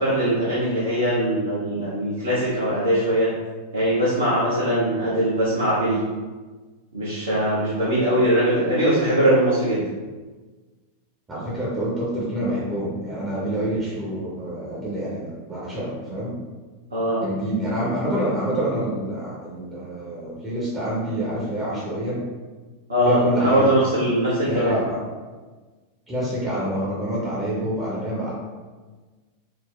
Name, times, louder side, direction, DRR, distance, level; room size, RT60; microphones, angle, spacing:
voice 1, 0.0-3.3 3.7-6.0 6.9-9.8 16.9-17.2 22.9-24.7, right 1 dB, 75° right, -10 dB, 0.8 m, -21 dB
voice 2, 11.3-16.4 17.2-22.3 23.0-23.7 24.4-25.0 26.1-28.3, equal, 15° right, -7 dB, 0.7 m, -27 dB
3.5 x 2.1 x 2.3 m, 1.3 s
figure-of-eight pair, 90°, 0 cm